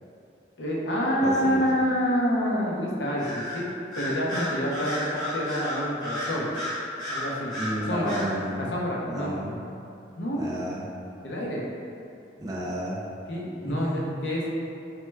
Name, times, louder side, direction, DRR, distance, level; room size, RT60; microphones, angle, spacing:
voice 1, 0.6-3.7 4.0-6.5 7.1-8.2 8.6-9.3 10.2-10.4 11.2-11.6 13.3-14.5, equal, 80° left, -4 dB, 0.6 m, -27 dB
voice 2, 1.2-1.6 7.6-8.7 9.1-9.6 10.3-10.9 12.4-13.1 13.6-14.1, right 1 dB, 20° right, -5 dB, 0.3 m, -32 dB
Bird vocalization bird call bird song, 3.2-3.6 3.9-7.7 8.1-8.3, left 1 dB, 25° left, 0.9 m, -33 dB
3.1 x 2.2 x 3.2 m, 2.7 s
head